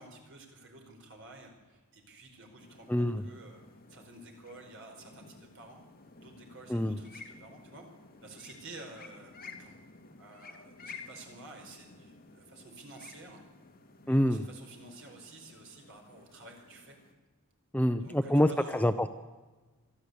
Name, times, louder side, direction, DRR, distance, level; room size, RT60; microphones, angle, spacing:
voice 1, 0.0-3.6 3.9-5.8 6.2-7.9 8.2-9.7 10.2-13.4 14.0-17.0 18.0-18.9, right 2 dB, 55° right, 2 dB, 4.9 m, -51 dB
sound 1, 2.6-17.1, left 4 dB, 40° left, 2.4 m, -53 dB
voice 2, 2.9-3.2 6.7-7.0 14.1-14.4 17.7-18.5 18.7-19.1, equal, 5° left, 9 dB, 0.6 m, -26 dB
24.0 x 13.5 x 8.3 m, 1.2 s
head